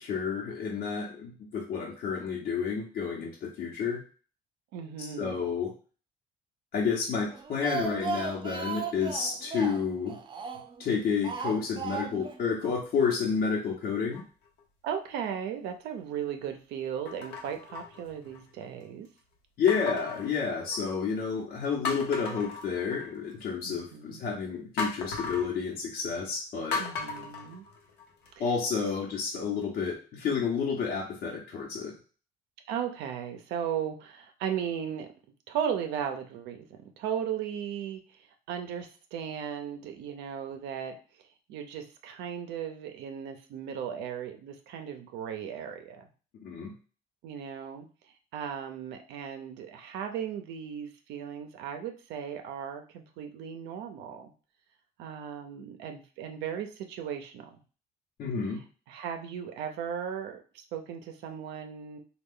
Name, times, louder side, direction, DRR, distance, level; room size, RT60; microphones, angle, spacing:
voice 1, 0.0-4.0 5.2-5.7 6.7-10.2 10.8-14.2 19.6-26.8 28.4-31.9 46.4-46.7 58.2-58.6, left 6 dB, 60° left, -3 dB, 0.9 m, -30 dB
voice 2, 4.7-5.4 14.8-19.1 23.6-24.2 26.8-27.6 28.4-28.5 32.7-35.1 35.5-38.0 38.5-41.0 41.5-46.0 47.2-47.9 48.3-54.3 55.0-57.6 58.9-62.0, right 8 dB, 90° right, 5 dB, 0.6 m, -36 dB
Speech, 7.3-10.8 11.2-12.4 12.6-12.7 13.0-13.1, right 4 dB, 30° right, 0.5 m, -36 dB
sound 1, 14.1-14.6 15.3-15.4 17.1-18.5 19.7-21.0 21.4-21.5 21.8-23.3 24.8-25.5 26.7-28.3 28.7-28.8, left 4 dB, 85° left, 0.8 m, -37 dB
3.3 x 2.3 x 3.7 m, 0.37 s
cardioid pair, 110°, 17 cm